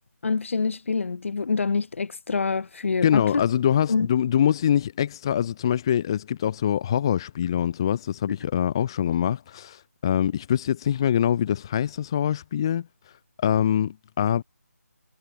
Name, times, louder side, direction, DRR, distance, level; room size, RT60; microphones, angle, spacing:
voice 1, 0.2-3.4 3.9-4.1, left 4 dB, 55° left, 0.9 m, -26 dB
voice 2, 3.0-12.9 13.4-14.4, left 9 dB, 15° left, 0.4 m, -24 dB
figure-of-eight pair, 165°, 8 cm